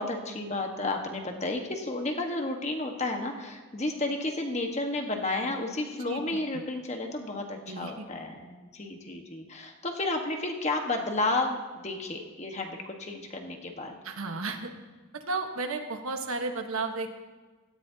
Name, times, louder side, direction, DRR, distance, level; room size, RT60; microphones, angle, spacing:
voice 1, 0.0-13.9, left 2 dB, 30° left, 3 dB, 1.4 m, -32 dB
voice 2, 6.1-6.4 7.7-8.1 14.0-14.7 15.1-17.1, right 3 dB, 85° right, 5 dB, 1.3 m, -33 dB
16.5 x 14.0 x 2.8 m, 1.3 s
head